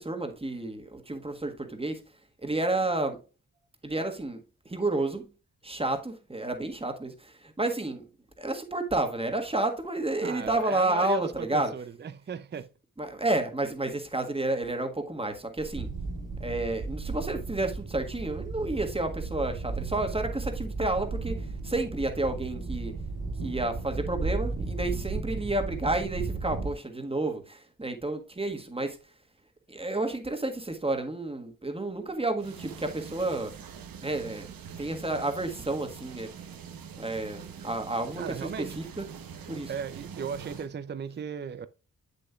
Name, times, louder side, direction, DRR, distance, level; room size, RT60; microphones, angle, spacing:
voice 1, 0.0-2.0 2.4-3.2 3.8-4.4 4.6-5.3 5.6-8.0 8.4-11.7 13.0-15.9 16.4-22.9 23.4-29.0 29.7-33.5 34.0-34.5 34.8-36.3 37.0-39.1 39.5-39.7, right 2 dB, 15° right, 1.5 m, -30 dB
voice 2, 10.2-12.7 33.9-34.1 38.2-38.8 39.7-41.7, right 7 dB, 30° right, 0.5 m, -36 dB
sound 1, 15.7-26.8, right 3 dB, 65° right, 3.1 m, -34 dB
sound 2, 32.4-40.7, right 7 dB, 80° right, 0.9 m, -44 dB
7.5 x 6.7 x 2.3 m
cardioid pair, 50°, 34 cm